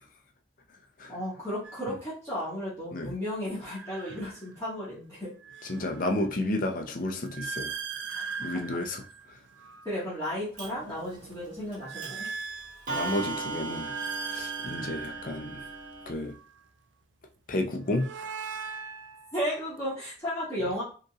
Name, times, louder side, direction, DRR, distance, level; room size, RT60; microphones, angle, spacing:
voice 1, 1.1-5.3 8.1-8.2 8.5-8.6 9.8-12.3 19.3-20.8, equal, 15° left, 1.6 m, -34 dB
sound 1, 1.6-1.9 3.6-4.8 5.2-10.0 10.6-13.2 13.6-16.6 17.6-19.9, right 5 dB, 85° right, 0.4 m, -40 dB
voice 2, 5.6-7.7 8.4-9.0 12.9-13.9 14.3-15.7 16.1-16.4 17.5-18.1, left 1 dB, 45° left, 0.6 m, -31 dB
Clock, 10.6-10.7 11.7-11.8 12.0-12.3 12.9-16.1, right 3 dB, 45° right, 1.4 m, -37 dB
5.1 x 3.0 x 2.4 m
head